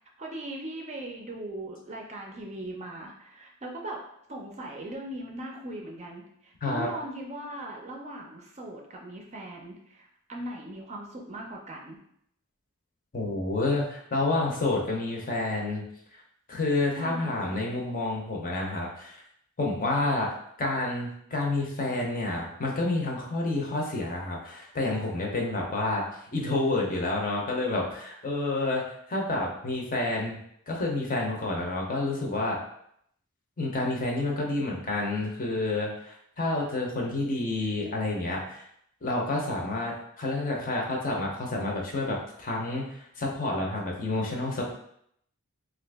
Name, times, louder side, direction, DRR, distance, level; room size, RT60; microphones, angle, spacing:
voice 1, 0.2-12.0 17.0-17.7 34.5-34.6, right 1 dB, 30° right, 0 dB, 0.5 m, -39 dB
voice 2, 13.1-15.8 16.5-19.2 19.6-20.3 20.6-26.0 26.3-28.8 29.1-30.4 30.7-32.6 33.6-38.6 39.0-44.7, left 2 dB, 40° left, -1 dB, 0.7 m, -29 dB
2.9 x 2.5 x 3.4 m, 0.71 s
head